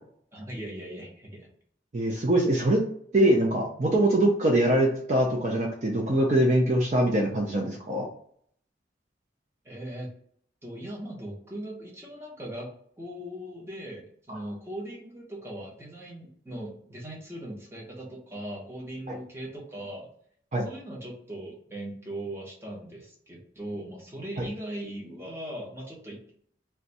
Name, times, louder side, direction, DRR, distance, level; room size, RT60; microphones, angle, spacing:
voice 1, 0.3-1.5 9.6-10.1 10.6-12.7 13.0-20.1 20.6-26.2, right 1 dB, 15° right, -2 dB, 0.8 m, -39 dB
voice 2, 1.9-2.8 3.1-8.1 14.3-14.4 19.1-19.2 20.5-20.7 24.4-24.5, right 1 dB, 40° right, -1 dB, 0.4 m, -23 dB
2.6 x 2.2 x 4.0 m, 0.62 s
head